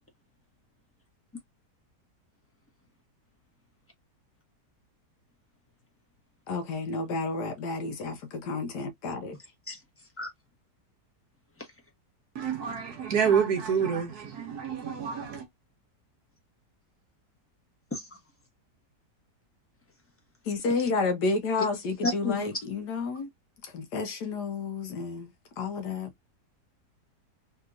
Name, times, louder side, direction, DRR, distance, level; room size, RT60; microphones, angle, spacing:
voice 1, 6.5-9.4 20.4-23.3 23.7-26.1, left 4 dB, 75° left, 1.3 m, -31 dB
voice 2, 12.3-15.5, right 7 dB, 70° right, 1.3 m, -28 dB
voice 3, 22.0-22.5, left 3 dB, 10° left, 0.9 m, -30 dB
3.4 x 2.9 x 2.4 m
omnidirectional pair, 1.8 m